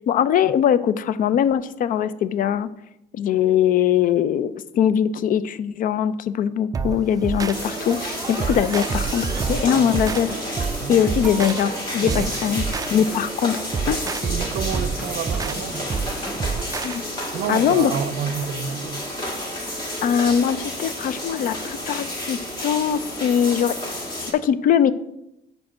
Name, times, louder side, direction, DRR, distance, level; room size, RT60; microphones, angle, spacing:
voice 1, 0.1-2.7 3.1-10.3 10.9-13.6 13.9-14.0 16.8-17.0 17.5-17.9 20.0-23.8 24.2-24.9, left 9 dB, 55° left, 0.4 m, -21 dB
sound 1, 6.7-17.0, right 5 dB, 20° right, 0.3 m, -28 dB
sound 2, 7.5-24.3, left 1 dB, 25° left, 1.7 m, -31 dB
sound 3, 8.9-16.4, right 1 dB, 5° right, 0.8 m, -39 dB
voice 2, 12.0-12.5 14.2-15.9 17.3-19.0, right 8 dB, 75° right, 0.5 m, -29 dB
5.0 x 4.7 x 6.1 m
cardioid pair, 110°, 17 cm